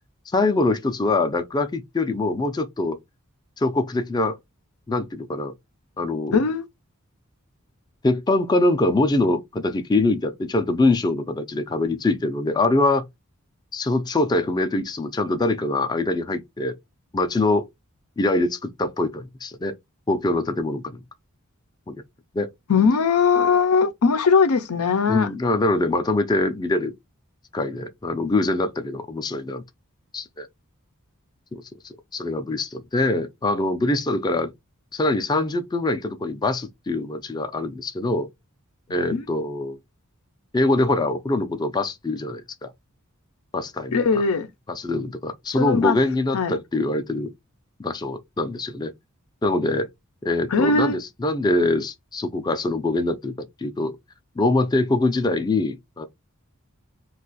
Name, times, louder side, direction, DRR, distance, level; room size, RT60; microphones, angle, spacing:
voice 1, 0.3-3.0 3.6-4.4 4.9-5.5 6.0-6.4 8.0-13.1 13.7-16.8 17.1-17.7 18.2-19.7 20.1-21.0 21.9-22.0 22.3-22.5 25.1-26.9 27.5-29.6 30.1-30.5 31.5-31.6 32.1-34.5 34.9-38.3 38.9-39.8 40.5-42.7 43.5-44.2 44.7-47.3 47.8-48.9 49.4-49.9 50.2-54.0 54.4-56.0, left 2 dB, 20° left, 0.4 m, -23 dB
voice 2, 6.3-6.7 22.7-25.3 39.1-39.2 43.9-44.5 45.6-46.0 46.3-46.5 50.5-51.0, left 5 dB, 85° left, 0.6 m, -20 dB
2.5 x 2.3 x 3.9 m
head